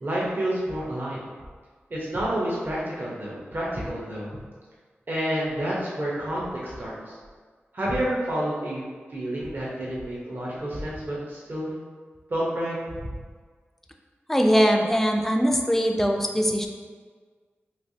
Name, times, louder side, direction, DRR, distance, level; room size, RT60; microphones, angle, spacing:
voice 1, 0.0-1.3 1.9-4.3 5.1-7.2 7.7-8.8 9.1-11.8 12.3-13.1, right 1 dB, 55° right, -6 dB, 0.8 m, -29 dB
voice 2, 14.3-16.7, equal, 5° left, 3 dB, 0.3 m, -21 dB
3.2 x 3.1 x 2.7 m, 1.5 s
wide cardioid pair, 90°, 4 cm